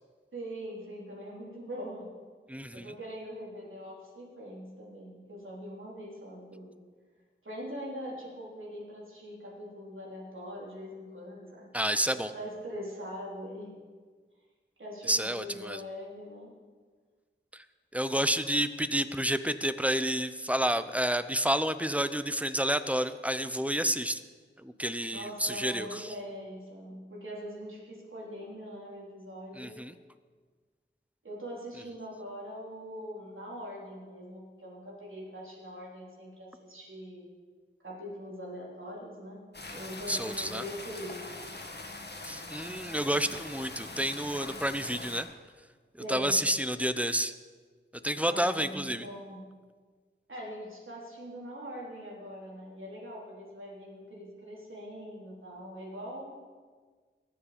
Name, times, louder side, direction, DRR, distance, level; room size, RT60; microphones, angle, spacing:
voice 1, 0.3-2.1 2.7-6.7 7.4-11.7 12.1-13.7 14.8-16.5 25.1-29.8 31.2-37.3 37.8-39.4 39.7-41.3 46.0-46.4 48.2-49.5 50.3-56.3, equal, 75° right, -4 dB, 3.9 m, -42 dB
voice 2, 2.5-3.0 11.7-12.3 15.0-15.8 17.5-17.6 17.9-24.2 24.6-26.1 29.6-29.9 40.1-40.6 42.2-45.3 45.9-47.3 48.0-49.1, equal, 5° right, 12 dB, 0.7 m, -30 dB
sound 1, 39.5-45.2, left 2 dB, 55° left, 1.7 m, -43 dB
21.5 x 7.6 x 5.2 m, 1.5 s
wide cardioid pair, 50°, 21 cm